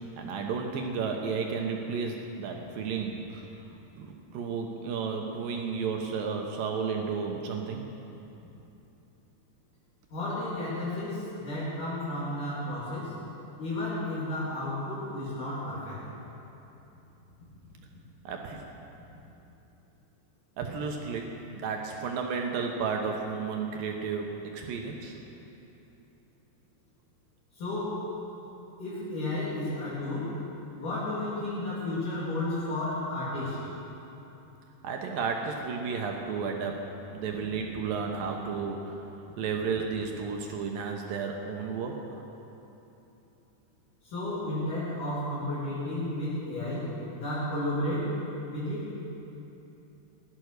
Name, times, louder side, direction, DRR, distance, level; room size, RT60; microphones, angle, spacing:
voice 1, 0.2-3.4 4.0-7.9 18.2-18.6 20.6-21.3 21.6-25.1 34.8-36.8 37.1-39.0 39.4-42.2, right 5 dB, 70° right, 2 dB, 2.4 m, -32 dB
voice 2, 10.1-13.2 13.6-16.1 27.5-28.1 28.8-30.4 30.8-33.6 44.0-48.9, left 1 dB, 55° left, -9 dB, 3.9 m, -32 dB
16.5 x 12.0 x 6.6 m, 3.0 s
omnidirectional pair, 4.7 m